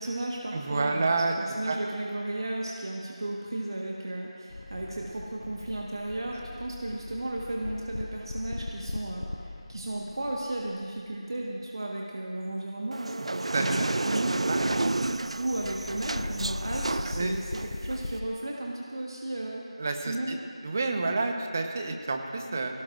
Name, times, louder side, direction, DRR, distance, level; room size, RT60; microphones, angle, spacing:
voice 1, 0.0-19.7 20.0-20.4, right 1 dB, 50° right, -2 dB, 1.4 m, -34 dB
voice 2, 0.5-1.4 1.7-1.8 13.5-13.9 14.5-14.6 17.1-17.3 19.8-20.4 20.6-22.8, right 3 dB, 25° right, 4 dB, 1.0 m, -29 dB
sound 1, 4.5-11.2 13.5-18.2, left 2 dB, 45° left, 0.6 m, -40 dB
sound 2, 12.9-18.2, right 2 dB, 65° right, 0.3 m, -31 dB
21.5 x 18.0 x 2.6 m, 2.2 s
figure-of-eight pair, 170°, 3 cm